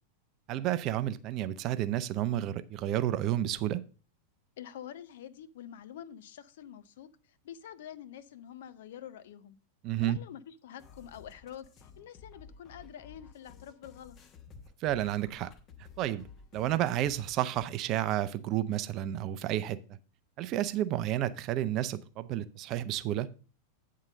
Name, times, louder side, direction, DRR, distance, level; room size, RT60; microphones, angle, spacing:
voice 1, 0.5-3.8 9.8-10.2 14.8-15.5 16.0-16.3 16.5-19.8 20.4-23.3, right 13 dB, 35° right, 0.5 m, -31 dB
voice 2, 4.6-9.6 10.0-14.2, left 10 dB, 55° left, 0.5 m, -47 dB
sound 1, 10.8-17.7, left 6 dB, 30° left, 1.1 m, -54 dB
8.8 x 3.7 x 6.4 m
figure-of-eight pair, 90°, 0 cm